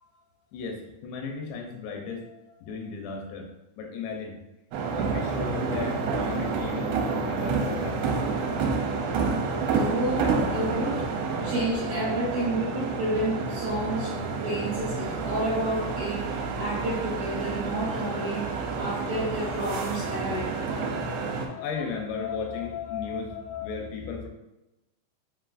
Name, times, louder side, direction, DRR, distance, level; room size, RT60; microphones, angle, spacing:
voice 1, 0.5-3.5 3.8-4.4 5.0-8.3 20.6-24.3, left 5 dB, 85° left, 3 dB, 2.8 m, -35 dB
sound 1, 4.7-21.5, right 4 dB, 85° right, 2.6 m, -29 dB
voice 2, 9.7-11.1 11.4-14.2 14.4-20.6 21.0-21.1, right 1 dB, 70° right, -8 dB, 1.7 m, -30 dB
7.9 x 2.6 x 2.4 m, 0.97 s
omnidirectional pair, 4.8 m